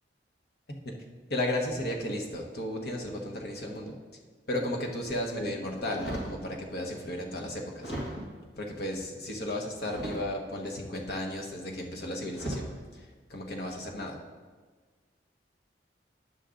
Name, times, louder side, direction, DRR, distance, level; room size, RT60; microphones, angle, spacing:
voice 1, 1.3-4.0 4.5-7.9 8.6-12.6 12.9-13.0 13.3-14.2, left 1 dB, 60° left, 0 dB, 1.2 m, -34 dB
sound 1, 5.9-6.4 7.1-7.2 7.8-8.5 9.8-10.6 11.7-11.9 12.3-12.8 13.4-13.7, right 1 dB, 80° left, 2.1 m, -37 dB
9.7 x 7.0 x 3.8 m, 1.4 s
head